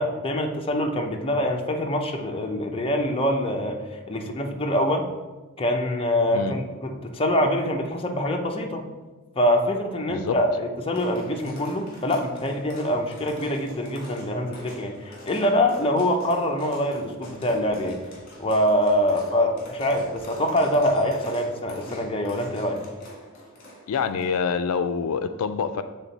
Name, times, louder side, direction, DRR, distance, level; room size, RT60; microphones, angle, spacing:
voice 1, 0.0-3.8 4.1-5.1 5.6-8.9 9.4-18.0 18.4-22.8, left 1 dB, 25° left, 2 dB, 0.6 m, -24 dB
sound 1, 10.9-24.4, equal, 45° left, 1.8 m, -43 dB
voice 2, 23.9-25.8, left 6 dB, 80° left, 11 dB, 0.3 m, -26 dB
7.4 x 3.6 x 4.0 m, 1.2 s
head